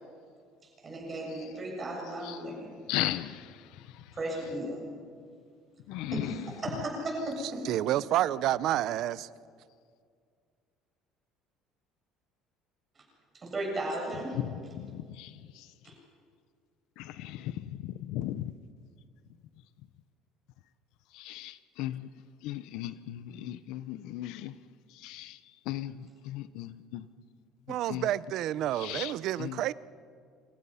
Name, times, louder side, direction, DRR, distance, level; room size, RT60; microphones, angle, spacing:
voice 1, 0.8-2.7 4.1-4.8 6.1-7.7 13.3-14.7 15.8-15.9, right 1 dB, 20° right, -1 dB, 7.3 m, -35 dB
voice 2, 2.9-3.4 5.9-6.1 14.9-15.3 17.2-17.5 18.1-18.4 21.2-22.0 22.4-24.5 25.0-25.3 25.7-25.9 26.3-27.0 27.9-28.0 28.8-29.1 29.4-29.5, left 14 dB, 65° left, 13 dB, 0.8 m, -36 dB
voice 3, 7.6-9.3 27.7-29.7, right 13 dB, 45° right, 18 dB, 0.6 m, -29 dB
29.0 x 26.5 x 5.7 m, 2.1 s
cardioid pair, 180°, 0 cm